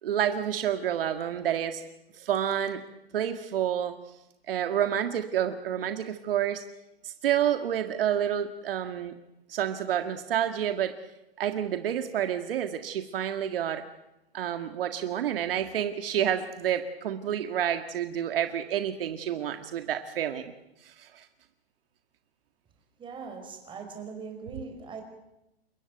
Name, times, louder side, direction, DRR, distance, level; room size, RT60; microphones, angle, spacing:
voice 1, 0.0-1.8 2.1-2.8 3.1-3.9 4.5-6.6 7.0-9.1 9.5-11.0 11.4-13.8 14.3-20.5 20.8-21.3, right 10 dB, 65° right, 7 dB, 1.9 m, -29 dB
voice 2, 23.0-25.0, right 5 dB, 15° right, 5 dB, 5.3 m, -40 dB
29.5 x 15.0 x 9.4 m, 0.91 s
hypercardioid pair, 145°, 31 cm